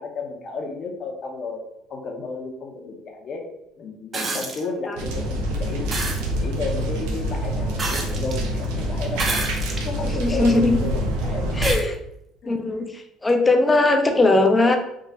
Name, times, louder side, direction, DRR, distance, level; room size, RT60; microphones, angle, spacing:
voice 1, 0.0-3.4 3.8-5.9 6.2-9.4 9.8-11.6 12.4-12.6, left 4 dB, 45° left, 2 dB, 0.9 m, -33 dB
sound 1, 4.1-4.6 5.9-6.2 7.8-8.4 9.1-9.9 10.5-10.6 11.6-11.8 13.3-13.4, right 3 dB, 30° right, 0.7 m, -28 dB
sound 2, 5.0-11.7, right 1 dB, 90° right, 0.8 m, -26 dB
voice 2, 10.0-10.8 11.6-12.0 12.5-14.8, left 2 dB, 15° left, 5 dB, 0.6 m, -19 dB
3.7 x 2.4 x 4.2 m, 0.81 s
cardioid pair, 110°, 0 cm